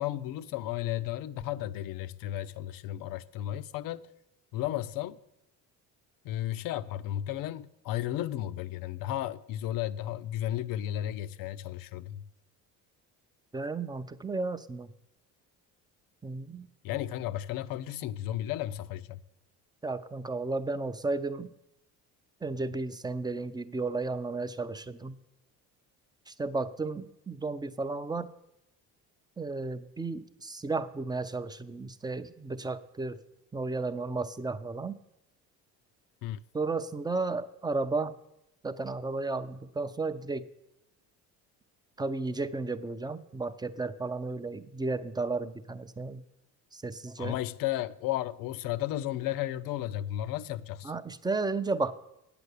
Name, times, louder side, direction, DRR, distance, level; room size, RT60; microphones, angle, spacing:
voice 1, 0.0-4.1 4.5-5.2 6.2-12.3 16.8-19.2 36.2-36.4 47.2-50.9, left 13 dB, 70° left, 0.6 m, -34 dB
voice 2, 13.5-14.9 16.2-16.7 19.8-21.5 22.4-25.2 26.3-28.3 29.4-33.2 33.5-34.9 36.5-38.1 38.6-40.4 42.0-46.2 46.7-47.4 50.8-51.9, right 3 dB, 10° right, 0.5 m, -33 dB
8.8 x 6.8 x 8.1 m
cardioid pair, 105°, 35 cm